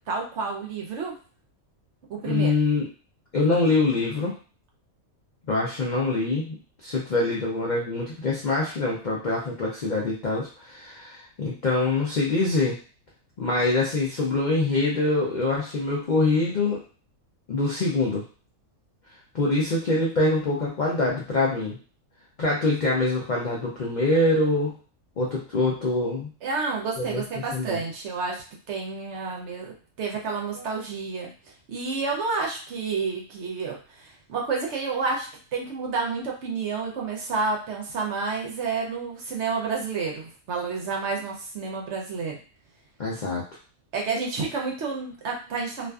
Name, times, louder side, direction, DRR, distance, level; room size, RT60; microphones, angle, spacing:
voice 1, 0.1-1.2 2.1-2.5 26.4-31.3 31.7-42.4 43.9-45.9, right 4 dB, 65° right, 0 dB, 0.8 m, -30 dB
voice 2, 2.2-2.9 3.3-4.3 5.5-12.8 13.4-16.8 17.5-18.2 19.3-21.8 22.4-24.7 25.2-26.3 27.0-27.2 27.5-27.8 43.0-43.4, left 2 dB, 80° left, -3 dB, 0.4 m, -24 dB
2.5 x 2.4 x 2.3 m, 0.37 s
omnidirectional pair, 1.5 m